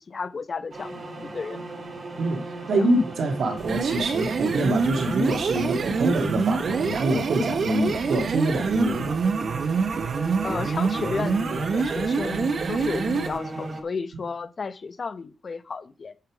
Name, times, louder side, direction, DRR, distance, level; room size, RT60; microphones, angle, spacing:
voice 1, 0.1-1.6 2.7-2.9 10.4-16.1, left 4 dB, 40° left, 1.1 m, -33 dB
sound 1, 0.7-13.8, right 2 dB, 40° right, 3.0 m, -36 dB
voice 2, 2.2-9.2, right 1 dB, 75° right, 2.8 m, -25 dB
sound 2, 3.6-13.4, right 5 dB, 55° right, 1.2 m, -26 dB
8.9 x 8.6 x 5.2 m
wide cardioid pair, 125°, 0 cm